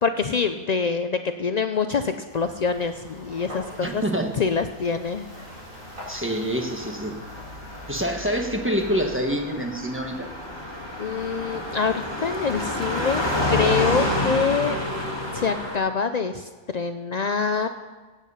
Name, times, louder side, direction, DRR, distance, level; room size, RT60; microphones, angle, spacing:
voice 1, 0.0-4.0 4.4-5.2 11.0-13.2 13.5-14.8 15.3-17.7, left 5 dB, 75° left, 8 dB, 0.3 m, -25 dB
sound 1, 2.3-13.1, equal, 75° right, 5.0 m, -44 dB
voice 2, 3.8-4.3 6.1-7.2 7.9-10.3, equal, 10° right, 3 dB, 1.2 m, -26 dB
Car passing by, 5.8-15.8, left 1 dB, 20° left, 2.3 m, -29 dB
16.5 x 8.3 x 5.6 m, 1.3 s
omnidirectional pair, 1.4 m